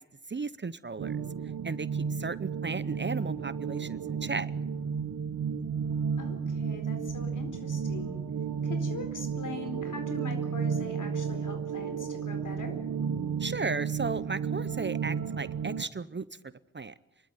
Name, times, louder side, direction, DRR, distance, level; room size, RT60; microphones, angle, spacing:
voice 1, 0.3-1.2 1.6-4.5 13.4-16.2 16.7-16.9, right 4 dB, 35° right, 16 dB, 0.8 m, -35 dB
sound 1, 1.0-15.9, right 6 dB, 70° right, 1.3 m, -33 dB
voice 2, 6.2-8.2 8.6-12.8, left 3 dB, 65° left, 7 dB, 4.3 m, -42 dB
28.0 x 12.5 x 9.4 m, 0.98 s
cardioid pair, 55°, 34 cm